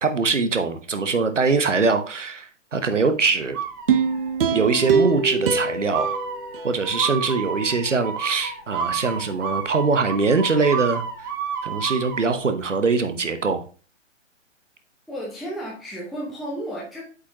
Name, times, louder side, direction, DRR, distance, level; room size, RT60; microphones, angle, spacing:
voice 1, 0.0-3.6 4.5-6.1 6.6-11.3 11.6-13.6, right 4 dB, 70° right, 1.2 m, -22 dB
sound 1, 3.5-4.3 4.7-5.2 5.9-12.2, right 6 dB, 15° right, 0.5 m, -30 dB
sound 2, 3.9-7.2 7.6-7.7, right 5 dB, 50° right, 0.8 m, -24 dB
voice 2, 15.1-17.0, equal, ahead, 0.9 m, -33 dB
8.1 x 5.3 x 2.9 m
figure-of-eight pair, 125°, 38 cm